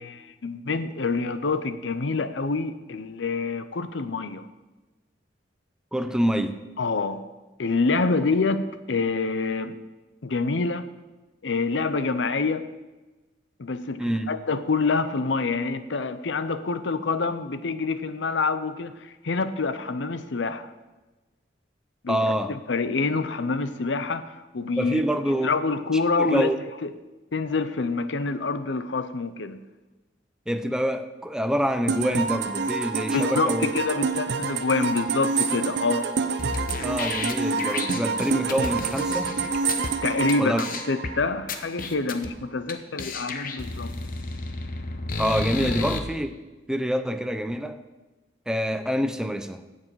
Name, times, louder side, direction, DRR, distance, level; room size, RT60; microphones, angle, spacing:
voice 1, 0.0-4.4 6.8-7.2 7.6-9.8 10.2-10.9 11.4-12.7 13.6-20.7 22.0-26.5 26.8-26.9 27.3-29.6 33.1-36.1 40.0-43.9 45.6-45.7, left 3 dB, 75° left, 0.7 m, -27 dB
voice 2, 5.9-6.6 14.0-14.3 22.1-22.5 24.8-25.6 26.2-26.6 30.5-33.7 36.8-39.3 40.4-40.7 45.2-46.4 46.7-47.8 48.5-49.6, equal, 5° right, 0.7 m, -26 dB
sound 1, 31.9-41.6, right 4 dB, 65° right, 0.6 m, -28 dB
sound 2, 36.4-39.9 40.3-40.4 40.6-41.1 41.5-42.3 42.7-42.8 43.0-46.0, left 3 dB, 50° left, 1.0 m, -32 dB
16.5 x 7.5 x 4.8 m
head